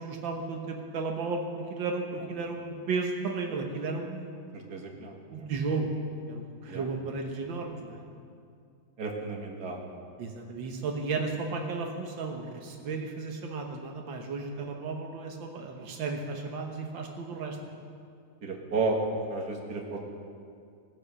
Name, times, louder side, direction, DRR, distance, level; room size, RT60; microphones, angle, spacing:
voice 1, 0.0-4.3 5.3-5.9 6.3-8.0 10.2-17.6, right 4 dB, 85° right, 2 dB, 1.9 m, -34 dB
voice 2, 4.5-5.5 6.7-6.8 9.0-9.9 18.4-19.0 19.3-20.0, right 3 dB, 55° right, 0 dB, 2.3 m, -33 dB
18.5 x 10.0 x 6.7 m, 2.3 s
omnidirectional pair, 2.0 m